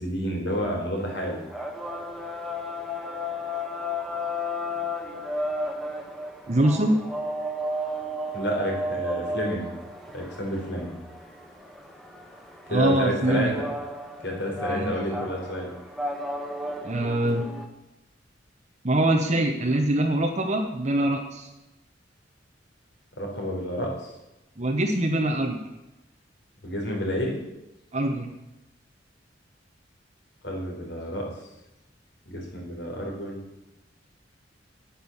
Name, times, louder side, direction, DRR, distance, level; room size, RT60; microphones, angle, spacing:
voice 1, 0.0-1.4 8.3-9.7 10.1-11.0 12.7-13.7 14.2-15.7 23.2-24.1 26.6-27.3 30.4-31.2 32.3-33.4, equal, 65° left, 0 dB, 4.2 m, -30 dB
sound 1, 1.0-17.7, left 1 dB, ahead, 1.5 m, -33 dB
voice 2, 6.5-7.0 12.7-13.5 14.7-14.9 16.8-17.5 18.8-21.5 24.6-25.6 27.9-28.3, right 1 dB, 35° right, 2 dB, 1.1 m, -23 dB
10.0 x 9.7 x 7.3 m, 0.96 s
head